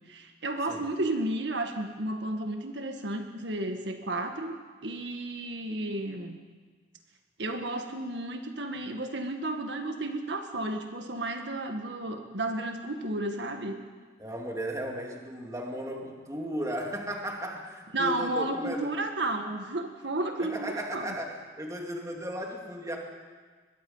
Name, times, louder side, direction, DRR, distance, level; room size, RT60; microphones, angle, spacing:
voice 1, 0.1-4.6 4.8-6.4 7.4-13.8 17.9-21.1, right 2 dB, 75° right, 5 dB, 1.8 m, -32 dB
voice 2, 14.2-18.9 20.4-23.0, equal, 15° right, 0 dB, 2.6 m, -35 dB
23.0 x 21.0 x 5.7 m, 1.5 s
head